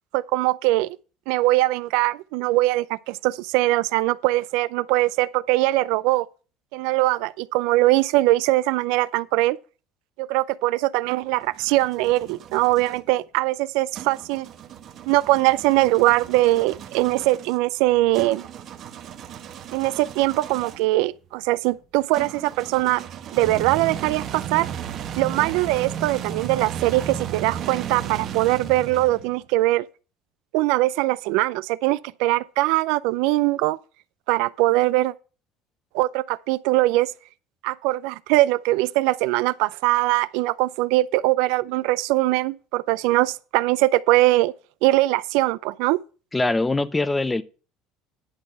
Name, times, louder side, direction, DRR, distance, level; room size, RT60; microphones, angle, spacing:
voice 1, 0.1-0.9 1.3-6.3 6.7-9.6 10.2-14.5 15.1-18.5 19.7-23.0 23.3-24.7 25.2-29.8 30.5-33.8 34.3-35.1 35.9-37.1 37.6-44.5 44.8-46.0, right 18 dB, 75° right, 0.4 m, -21 dB
sound 1, 11.2-13.0 13.9-20.9 22.1-29.4, right 9 dB, 45° right, 1.2 m, -35 dB
voice 2, 46.3-47.4, left 2 dB, 10° left, 0.5 m, -22 dB
10.5 x 4.0 x 7.5 m
cardioid pair, 140°, 0 cm